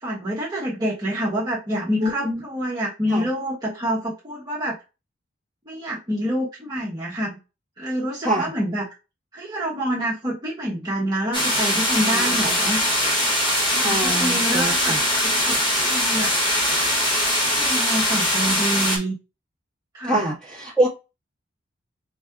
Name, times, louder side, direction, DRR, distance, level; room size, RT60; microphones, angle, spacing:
voice 1, 0.0-4.7 5.7-7.4 7.8-8.9 9.3-12.8 13.7-15.0 15.4-16.3 16.8-17.0 17.5-19.2 19.9-20.3, equal, 20° right, 1.0 m, -27 dB
voice 2, 2.0-2.4 3.1-3.3 8.2-8.5 12.1-12.5 13.8-15.0 20.0-20.9, right 1 dB, 5° left, 1.2 m, -24 dB
sound 1, 11.3-19.0, equal, 20° left, 1.2 m, -21 dB
5.2 x 3.6 x 2.3 m
head